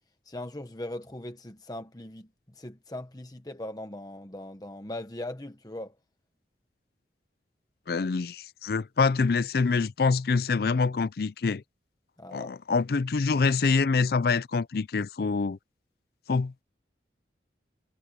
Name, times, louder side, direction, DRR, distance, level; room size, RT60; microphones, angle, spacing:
voice 1, 0.3-2.3 2.5-5.9 12.2-12.5, left 1 dB, 20° left, 1.0 m, -39 dB
voice 2, 7.9-11.6 12.3-15.6 16.3-16.6, left 4 dB, 55° left, 0.4 m, -25 dB
head